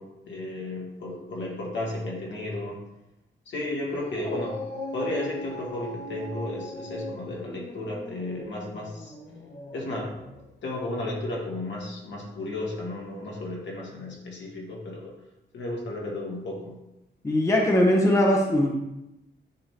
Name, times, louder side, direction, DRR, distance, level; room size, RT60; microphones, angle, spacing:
voice 1, 0.0-2.8 3.4-4.6 4.9-9.1 9.7-10.1 10.6-15.1 15.5-16.8, left 2 dB, 70° left, -2 dB, 1.7 m, -33 dB
Dog, 3.8-10.5, equal, 40° left, 1.4 m, -39 dB
voice 2, 17.2-18.7, left 1 dB, 15° left, -1 dB, 0.7 m, -20 dB
9.7 x 3.6 x 2.9 m, 0.91 s
wide cardioid pair, 170°, 19 cm